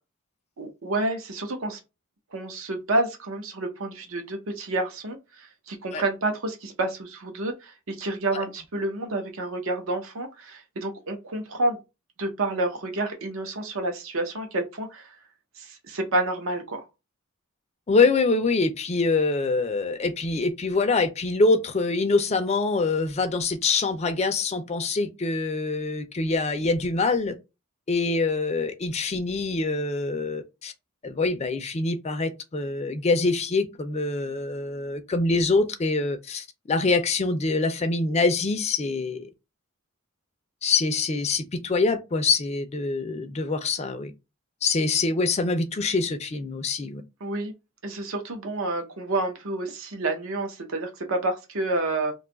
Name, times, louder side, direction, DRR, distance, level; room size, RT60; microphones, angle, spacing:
voice 1, 0.6-1.8 2.3-11.8 12.2-15.1 15.6-16.8 47.2-47.5 47.8-52.1, right 2 dB, 65° right, 0.7 m, -29 dB
voice 2, 17.9-27.3 27.9-30.7 31.0-39.3 40.6-44.1 44.6-47.0, left 3 dB, 30° left, 0.4 m, -25 dB
2.6 x 2.3 x 3.8 m
head